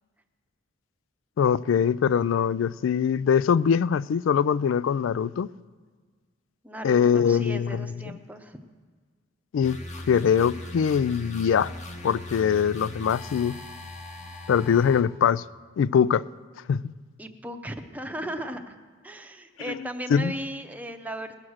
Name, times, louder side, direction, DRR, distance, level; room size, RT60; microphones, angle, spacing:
voice 1, 1.4-5.5 6.8-8.2 9.5-9.8 10.1-11.7 12.0-13.6 14.5-15.4 15.8-16.3 16.7-16.9 19.7-19.8 20.1-20.3, left 7 dB, 65° left, 0.3 m, -22 dB
voice 2, 6.6-8.6 17.2-18.8 19.0-21.3, right 1 dB, 10° right, 0.7 m, -36 dB
sound 1, 9.6-15.0, left 1 dB, 35° left, 1.2 m, -40 dB
19.5 x 7.4 x 6.4 m
head